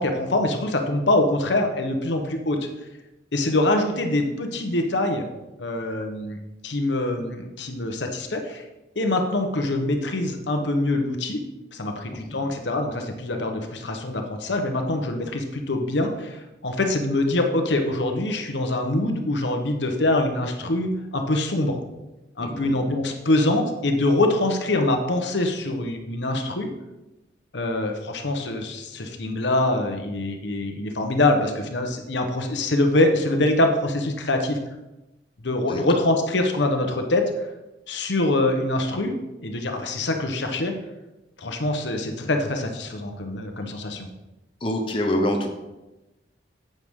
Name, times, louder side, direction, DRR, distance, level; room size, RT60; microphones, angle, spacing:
voice 1, 0.0-2.6 3.3-5.3 5.6-6.4 6.6-8.6 8.9-11.4 11.7-21.8 22.4-26.7 27.5-34.6 35.4-37.3 37.9-40.7 41.4-44.1, left 2 dB, 75° left, 4 dB, 1.1 m, -24 dB
voice 2, 12.1-12.4 22.4-22.8 35.7-35.8 44.6-45.5, left 1 dB, 30° left, 2 dB, 0.8 m, -26 dB
9.6 x 7.8 x 3.7 m, 1.0 s
head